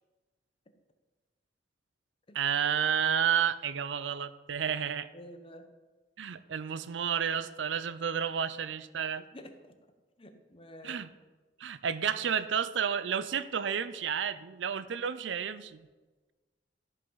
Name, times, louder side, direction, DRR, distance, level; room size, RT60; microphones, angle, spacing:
voice 1, 2.3-5.1 6.2-9.2 10.8-11.1 11.6-15.8, right 8 dB, 80° right, 15 dB, 0.5 m, -31 dB
voice 2, 5.1-5.7 9.3-9.8 10.2-11.0, equal, 30° left, 7 dB, 0.9 m, -49 dB
13.0 x 5.5 x 5.5 m, 1.3 s
head